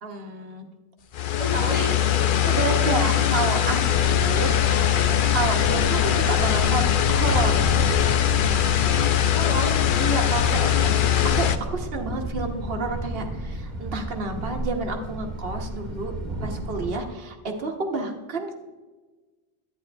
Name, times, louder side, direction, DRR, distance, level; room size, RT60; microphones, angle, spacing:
voice 1, 0.0-0.7 1.5-1.7 2.4-4.5 5.3-6.0 6.3-7.7 10.0-16.1 16.4-18.5, right 3 dB, 65° right, 4 dB, 1.1 m, -30 dB
sound 1, 1.1-11.6, left 11 dB, 60° left, 0.6 m, -21 dB
voice 2, 1.4-2.5 4.7-4.9 5.7-6.2 9.3-9.8, left 1 dB, 40° left, -8 dB, 2.0 m, -31 dB
Thunder, 3.8-16.9, right 1 dB, 45° right, 1.3 m, -33 dB
11.0 x 9.5 x 2.3 m, 1.3 s
omnidirectional pair, 1.1 m